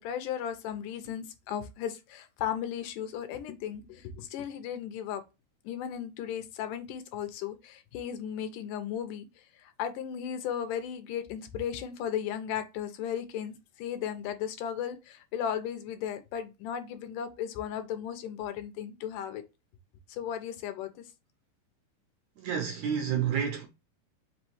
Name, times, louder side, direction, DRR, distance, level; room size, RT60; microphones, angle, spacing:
voice 1, 0.0-5.2 5.6-19.4 20.1-21.0, left 9 dB, 85° left, 2.3 m, -36 dB
voice 2, 22.4-23.7, right 8 dB, 75° right, 1.7 m, -29 dB
5.4 x 3.1 x 2.9 m
omnidirectional pair, 3.9 m